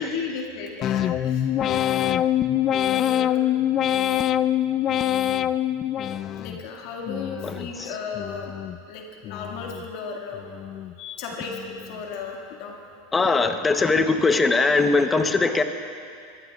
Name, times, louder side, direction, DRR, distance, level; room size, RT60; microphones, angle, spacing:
voice 1, 0.0-1.4 2.9-3.4 6.4-8.5 8.9-10.4 11.0-12.8, left 5 dB, 60° left, 0 dB, 1.9 m, -34 dB
sound 1, 0.8-6.6 7.1-7.7 8.1-8.8 9.2-9.9 10.3-10.9 11.4-12.0, left 11 dB, 35° left, 0.3 m, -25 dB
voice 2, 7.4-8.0 13.1-15.6, left 3 dB, 15° left, 8 dB, 0.9 m, -21 dB
22.5 x 14.5 x 2.4 m, 2.4 s
supercardioid pair, 115°, 0 cm